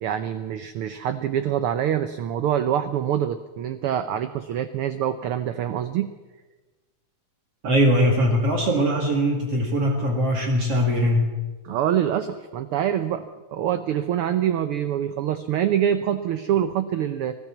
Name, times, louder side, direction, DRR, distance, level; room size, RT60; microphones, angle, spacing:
voice 1, 0.0-6.1 11.6-13.2 13.5-17.4, right 10 dB, 70° right, 10 dB, 1.3 m, -25 dB
voice 2, 7.6-11.2, equal, 55° right, 1 dB, 3.0 m, -21 dB
25.5 x 15.5 x 7.2 m, 1.2 s
omnidirectional pair, 3.4 m